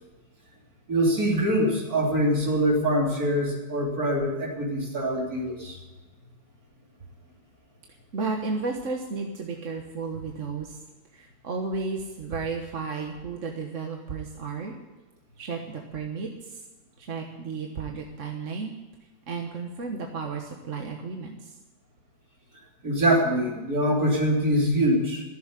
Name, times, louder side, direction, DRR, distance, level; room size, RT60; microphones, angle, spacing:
voice 1, 0.9-5.8 22.8-25.2, equal, 70° right, -2 dB, 3.7 m, -24 dB
voice 2, 8.1-10.8 11.1-14.7 15.4-16.6 17.0-18.7 19.3-21.5, right 4 dB, 55° right, 1 dB, 1.5 m, -33 dB
14.5 x 7.6 x 9.9 m, 1.1 s
omnidirectional pair, 1.6 m